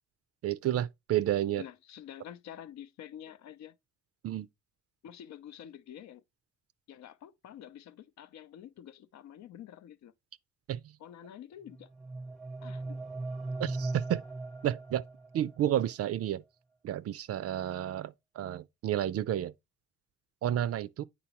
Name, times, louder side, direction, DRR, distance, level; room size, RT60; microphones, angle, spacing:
voice 1, 0.4-1.6 4.2-4.5 10.7-11.0 13.6-14.2 14.6-15.0 15.3-16.4 16.8-19.5 20.4-21.0, right 11 dB, 50° right, 0.4 m, -31 dB
voice 2, 1.6-3.8 5.0-6.2 6.9-10.1 11.0-11.9 12.6-13.0, left 10 dB, 65° left, 0.6 m, -48 dB
sound 1, 11.7-15.6, right 2 dB, ahead, 0.7 m, -39 dB
8.6 x 4.0 x 2.9 m
cardioid pair, 90°, 30 cm